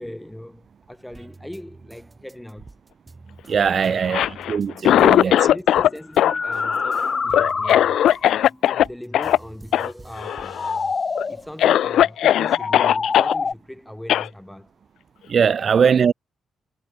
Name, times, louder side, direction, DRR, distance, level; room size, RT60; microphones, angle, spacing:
voice 1, 0.0-2.7 3.8-4.3 4.9-7.9 8.3-10.7 11.3-14.7 15.5-15.7, left 1 dB, 5° left, 6.8 m, -38 dB
sound 1, 1.1-6.2 6.5-11.7 12.2-13.1, right 3 dB, 25° right, 5.1 m, -48 dB
voice 2, 3.5-5.3 15.3-16.1, right 7 dB, 55° right, 0.6 m, -20 dB
Cough, 4.0-5.9 6.2-8.8 9.1-9.4 9.7-9.9 10.2-10.7 11.2-11.3 11.6-13.3 14.1-14.3, left 11 dB, 80° left, 0.7 m, -18 dB
sound 2, 5.2-5.3 6.0-8.4 10.3-11.4 12.4-13.5, left 4 dB, 40° left, 1.4 m, -26 dB
cardioid pair, 75°, 0 cm